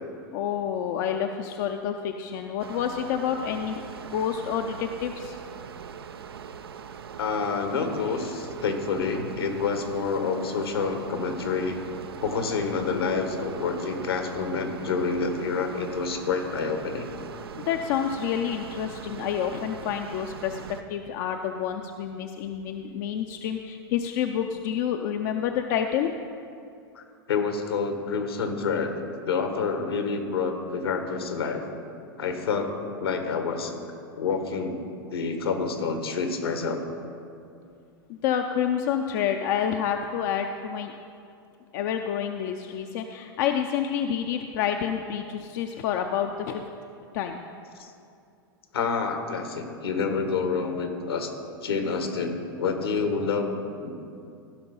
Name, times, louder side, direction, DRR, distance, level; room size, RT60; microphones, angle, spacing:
voice 1, 0.3-5.4 17.7-26.1 38.1-40.9 41.7-46.6 47.1-47.4, left 8 dB, 55° left, 5 dB, 0.6 m, -28 dB
sound 1, 2.6-20.8, right 7 dB, 80° right, 0.5 m, -41 dB
voice 2, 7.2-11.8 12.2-17.0 26.9-31.6 32.2-32.7 33.0-33.7 34.1-34.8 35.1-36.8 47.8-47.9 48.7-51.3 51.6-53.9, left 5 dB, 80° left, 5 dB, 1.5 m, -28 dB
15.5 x 5.9 x 5.5 m, 2.5 s
hypercardioid pair, 95°, 13 cm